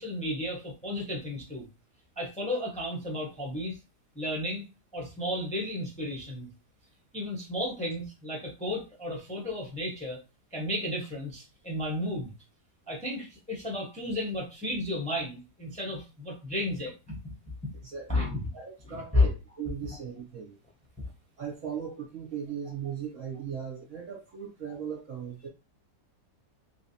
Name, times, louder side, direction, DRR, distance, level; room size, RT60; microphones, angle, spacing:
voice 1, 0.0-1.7 2.2-3.8 4.1-4.6 4.9-6.5 7.1-10.2 10.5-12.3 12.9-17.3 18.1-18.5 18.9-19.3, left 1 dB, 5° left, -3 dB, 0.9 m, -32 dB
voice 2, 17.8-20.6 21.4-25.5, right 7 dB, 55° right, 0 dB, 1.2 m, -38 dB
3.5 x 3.1 x 2.7 m, 0.28 s
omnidirectional pair, 1.8 m